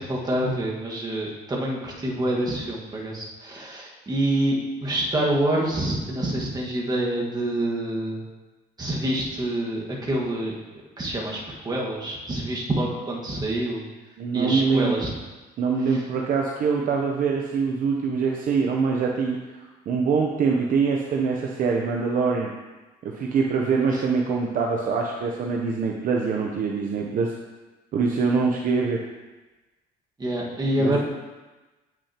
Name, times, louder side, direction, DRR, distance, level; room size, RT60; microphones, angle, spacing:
voice 1, 0.0-8.2 8.8-10.5 11.0-13.8 14.3-15.1 15.9-16.0 23.9-24.0 30.2-31.0, right 1 dB, 25° right, -3 dB, 1.6 m, -26 dB
voice 2, 14.2-14.9 15.6-22.5 23.0-27.3 27.9-29.0 30.8-31.0, right 5 dB, 55° right, 0 dB, 0.7 m, -24 dB
8.4 x 6.1 x 2.9 m, 1.2 s
cardioid pair, 110°, 17 cm